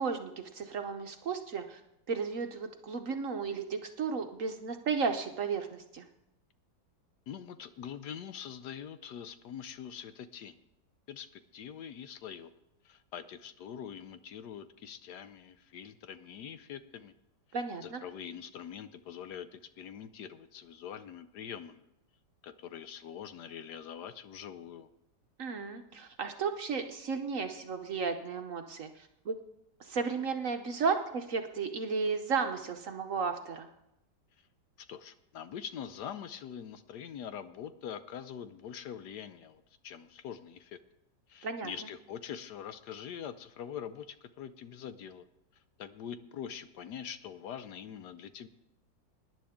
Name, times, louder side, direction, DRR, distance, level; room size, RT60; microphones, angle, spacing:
voice 1, 0.0-1.8 2.1-6.0 17.5-18.0 25.4-29.3 29.8-33.7 41.4-41.7, right 5 dB, 55° right, 6 dB, 1.0 m, -34 dB
voice 2, 7.3-10.5 11.1-12.5 12.8-17.1 17.8-21.8 22.4-24.9 34.9-40.8 41.3-45.2 45.8-48.5, left 8 dB, 70° left, 12 dB, 1.2 m, -44 dB
18.5 x 10.5 x 3.6 m, 0.87 s
omnidirectional pair, 2.0 m